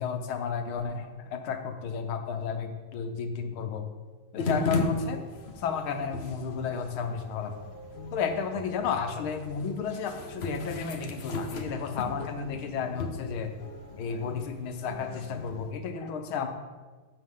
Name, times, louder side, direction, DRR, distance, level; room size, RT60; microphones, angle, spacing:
voice 1, 0.0-3.9 4.3-5.2 5.6-7.5 8.1-13.5 14.0-16.5, left 6 dB, 80° left, 6 dB, 1.7 m, -32 dB
sound 1, 4.4-15.7, left 3 dB, 55° left, 0.7 m, -36 dB
12.0 x 8.4 x 3.7 m, 1.4 s
omnidirectional pair, 2.3 m